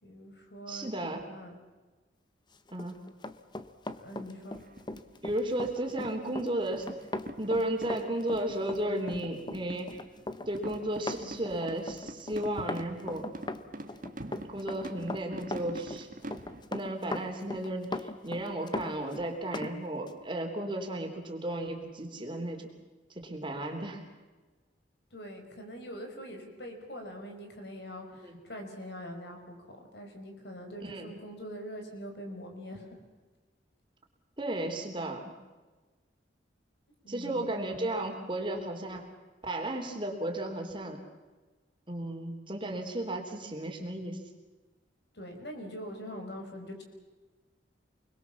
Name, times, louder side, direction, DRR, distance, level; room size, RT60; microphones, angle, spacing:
voice 1, 0.0-0.9 1.3-1.6 4.0-4.6 25.1-32.9 37.0-37.5 45.1-46.8, equal, 60° left, 4 dB, 5.3 m, -43 dB
voice 2, 0.7-1.3 2.7-3.0 5.2-6.9 7.4-10.0 10.5-13.3 14.5-16.1 16.7-22.7 23.2-24.0 28.2-28.4 30.8-31.1 34.4-35.3 37.1-39.1 39.4-41.0 41.9-44.2, right 1 dB, 25° right, 2 dB, 3.6 m, -34 dB
Run, 2.7-19.7 20.1-20.2, left 2 dB, 25° left, 1.0 m, -39 dB
sound 1, 4.1-16.6, right 1 dB, 45° right, 1.7 m, -46 dB
29.0 x 21.5 x 7.3 m, 1.3 s
head